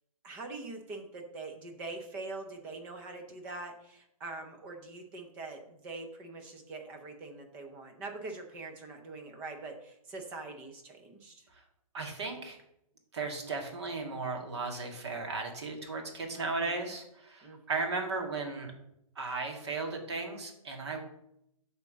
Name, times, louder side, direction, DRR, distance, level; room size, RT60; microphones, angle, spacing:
voice 1, 0.2-11.5 16.3-16.8 17.4-17.8, right 3 dB, 10° right, 4 dB, 0.5 m, -43 dB
voice 2, 11.9-12.6 13.1-18.7 19.2-21.0, right 3 dB, 45° right, 3 dB, 2.0 m, -35 dB
8.0 x 3.6 x 6.7 m, 0.79 s
hypercardioid pair, 170°, 19 cm